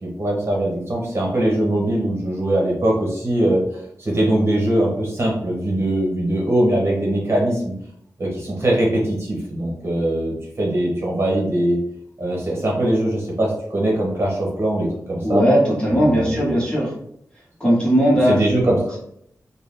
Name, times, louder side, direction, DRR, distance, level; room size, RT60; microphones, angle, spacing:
voice 1, 0.0-3.6 4.0-7.7 8.2-11.8 12.2-15.4 15.9-16.5 18.3-19.0, right 1 dB, 40° right, -3 dB, 1.1 m, -21 dB
voice 2, 15.2-16.9 17.6-18.4, equal, 15° left, -6 dB, 1.3 m, -18 dB
3.7 x 2.2 x 3.3 m, 0.71 s
wide cardioid pair, 100°, 6 cm